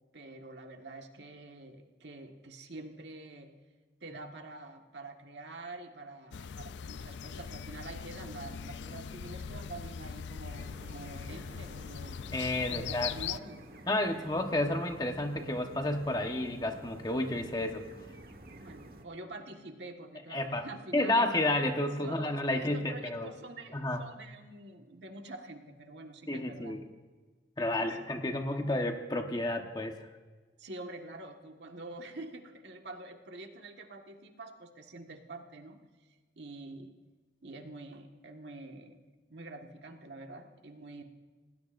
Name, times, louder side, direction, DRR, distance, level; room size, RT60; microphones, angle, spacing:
voice 1, 0.1-3.5 4.0-12.2 12.7-13.6 18.6-21.3 22.0-26.8 27.8-28.0 30.6-35.8 36.3-36.9 37.4-39.0 39.3-41.0, right 2 dB, 80° right, 3 dB, 1.6 m, -46 dB
sound 1, 6.3-13.4, left 7 dB, 80° left, 0.4 m, -41 dB
sound 2, 10.5-19.0, right 1 dB, 55° right, 1.4 m, -51 dB
voice 2, 12.3-13.1 13.9-17.8 20.3-20.7 20.9-23.3 23.7-24.0 26.3-26.8 27.6-30.0, left 1 dB, 20° left, 4 dB, 1.2 m, -31 dB
27.0 x 19.0 x 2.6 m, 1.4 s
head